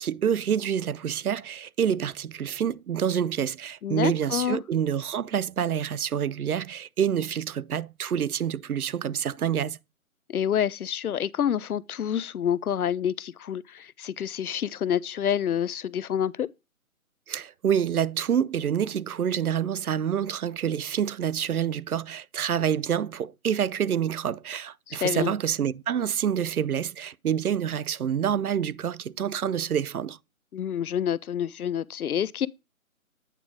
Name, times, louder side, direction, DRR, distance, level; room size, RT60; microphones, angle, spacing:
voice 1, 0.0-9.8 17.3-30.2, right 8 dB, 90° right, 0.5 m, -27 dB
voice 2, 3.8-4.6 10.3-16.5 24.9-25.3 30.5-32.5, left 9 dB, 80° left, 0.5 m, -28 dB
9.0 x 3.8 x 4.8 m
figure-of-eight pair, 150°, 43 cm